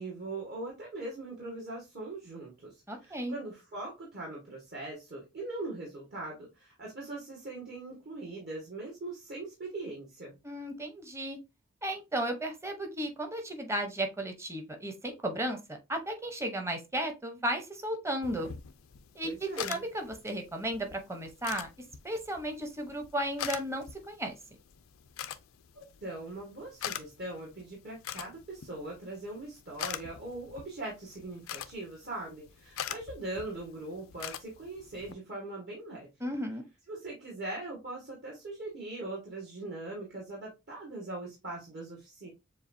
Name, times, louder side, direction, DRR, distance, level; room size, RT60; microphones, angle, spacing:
voice 1, 0.0-2.7 3.0-10.3 19.2-19.8 25.7-36.1 36.9-42.3, right 2 dB, 50° right, -3 dB, 1.7 m, -41 dB
voice 2, 2.9-3.3 10.4-11.4 11.8-18.5 19.1-21.7 22.0-24.4 36.2-36.6, right 1 dB, 15° right, 4 dB, 0.8 m, -34 dB
sound 1, 18.2-35.1, left 9 dB, 80° left, 0.4 m, -44 dB
7.1 x 2.4 x 2.6 m, 0.24 s
head